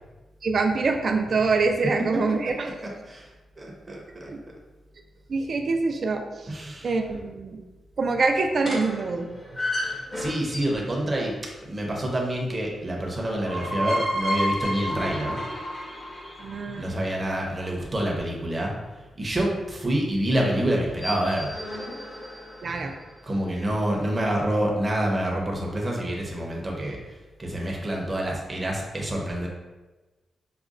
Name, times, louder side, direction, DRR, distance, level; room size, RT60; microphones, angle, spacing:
voice 1, 0.4-2.5 4.3-4.4 5.3-6.2 6.8-7.6 8.0-9.3 16.4-17.0 22.6-22.9, right 4 dB, 50° right, 4 dB, 0.4 m, -25 dB
voice 2, 2.8-3.3 3.6-4.3 6.5-6.9 9.8-11.3 11.6-15.4 16.8-21.5 23.2-29.5, right 1 dB, 25° right, -2 dB, 0.7 m, -27 dB
sound 1, 8.6-10.9 13.1-17.2 20.8-23.0, equal, 35° left, 0.9 m, -31 dB
4.9 x 2.2 x 2.4 m, 1.2 s
wide cardioid pair, 115°, 0 cm